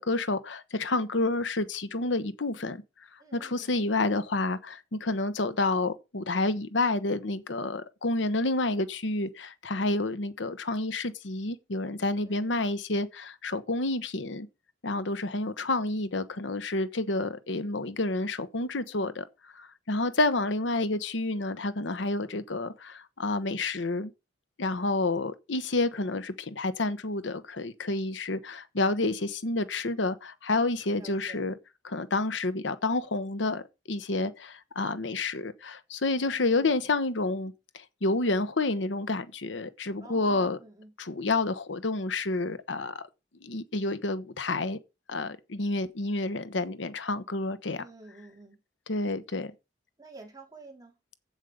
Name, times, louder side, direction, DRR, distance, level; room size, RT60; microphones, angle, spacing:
voice 1, 0.0-2.8 3.3-14.5 14.8-19.2 19.5-24.1 24.6-31.5 31.8-33.6 33.9-40.6 41.0-43.0 43.4-44.8 45.1-47.8 48.9-49.5, left 2 dB, 70° left, 1.0 m, -29 dB
voice 2, 3.2-3.9 12.2-12.5 31.0-31.5 36.3-36.9 40.0-40.9 47.7-48.6 50.0-50.9, right 2 dB, 20° right, 4.0 m, -50 dB
8.2 x 7.5 x 5.1 m
head